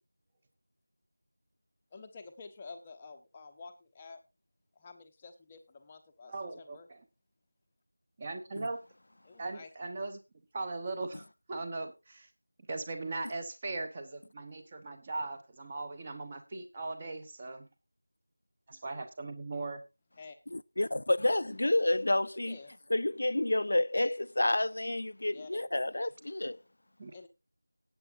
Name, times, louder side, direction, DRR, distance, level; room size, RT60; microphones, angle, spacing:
voice 1, 1.9-4.2 4.7-6.9 9.2-9.7 20.2-20.4 22.5-22.9 25.3-25.7 27.1-27.3, left 4 dB, 15° left, 0.8 m, -50 dB
voice 2, 6.3-7.0 8.2-8.8 9.4-10.2 10.5-12.3 12.7-17.7 18.7-19.8 27.0-27.1, right 3 dB, 20° right, 1.1 m, -39 dB
voice 3, 20.5-22.6 22.9-26.6, left 1 dB, 45° left, 0.5 m, -29 dB
19.0 x 8.6 x 2.6 m
figure-of-eight pair, 170°, 0 cm